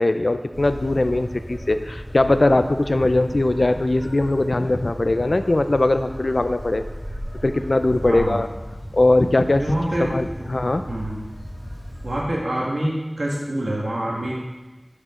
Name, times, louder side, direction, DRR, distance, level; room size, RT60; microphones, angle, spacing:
voice 1, 0.0-6.8 7.4-8.5 8.9-9.6 10.0-10.8, left 2 dB, 70° left, 9 dB, 0.4 m, -20 dB
sound 1, 0.5-12.2, equal, 25° left, 3.1 m, -35 dB
voice 2, 8.0-8.4 9.6-10.5 10.9-11.2 12.0-14.3, right 1 dB, 85° right, -5 dB, 1.6 m, -26 dB
13.0 x 5.2 x 3.7 m, 1.2 s
wide cardioid pair, 40°, 0 cm